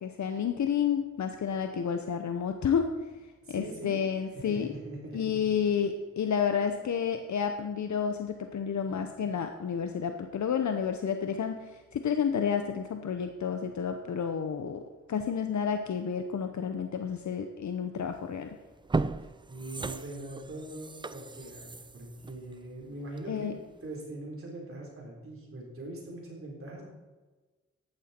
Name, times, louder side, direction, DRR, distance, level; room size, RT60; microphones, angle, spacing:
voice 1, 0.0-2.9 3.5-4.7 5.1-14.8 15.1-18.6 23.3-23.6, left 7 dB, 70° left, 6 dB, 0.8 m, -30 dB
voice 2, 3.4-5.4 8.9-9.1 19.2-23.5 23.8-26.8, right 1 dB, 45° right, -2 dB, 4.1 m, -42 dB
sound 1, 18.1-18.3 18.7-23.4 23.8-23.9, right 3 dB, 15° right, 0.3 m, -36 dB
14.0 x 11.5 x 4.4 m, 1.3 s
wide cardioid pair, 125°, 30 cm